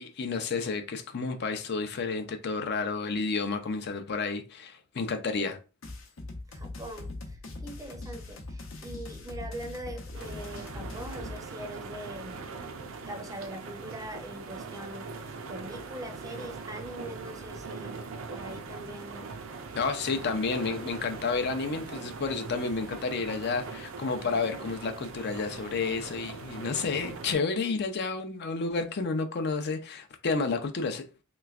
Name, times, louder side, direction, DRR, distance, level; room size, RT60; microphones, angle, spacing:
voice 1, 0.0-5.6 19.7-31.0, left 4 dB, 55° left, 0.5 m, -31 dB
sound 1, 5.8-11.4, left 2 dB, 80° left, 0.7 m, -41 dB
voice 2, 6.5-12.5 13.1-19.3 19.9-20.4, right 1 dB, 15° right, 0.5 m, -43 dB
sound 2, 10.1-27.4, right 4 dB, 75° right, 0.5 m, -41 dB
3.3 x 3.0 x 2.4 m
head